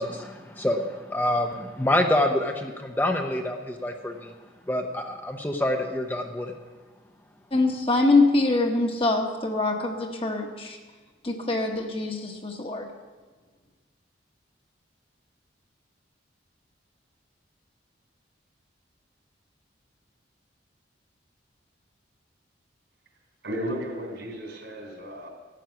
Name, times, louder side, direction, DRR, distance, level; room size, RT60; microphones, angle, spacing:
voice 1, 0.0-4.3 4.7-6.5, left 1 dB, 10° left, 4 dB, 0.7 m, -27 dB
voice 2, 7.5-10.8 11.2-12.9, left 2 dB, 30° left, 2 dB, 1.2 m, -24 dB
voice 3, 23.4-25.3, equal, 70° right, 1 dB, 3.5 m, -34 dB
14.0 x 9.3 x 5.9 m, 1.4 s
head